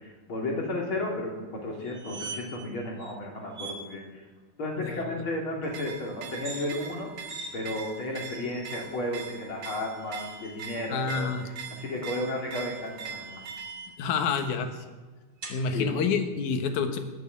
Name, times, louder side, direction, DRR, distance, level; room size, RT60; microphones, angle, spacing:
voice 1, 0.0-4.2 4.6-7.1 7.5-11.3 11.8-13.4 15.7-15.9, left 1 dB, 45° left, -1 dB, 3.4 m, -33 dB
sound 1, 1.8-2.7 3.0-3.1 3.5-3.8 6.3-6.7 7.3-7.5 8.2-8.8 9.8-10.6 12.5-14.1 15.4-15.6, right 3 dB, 35° right, 3.6 m, -42 dB
voice 2, 4.8-5.2 10.9-11.5 14.0-14.8 15.5-17.0, left 5 dB, 85° left, 7 dB, 2.8 m, -28 dB
sound 2, 5.6-13.9, right 6 dB, 80° right, 2.7 m, -42 dB
19.0 x 8.0 x 8.7 m, 1.3 s
omnidirectional pair, 3.4 m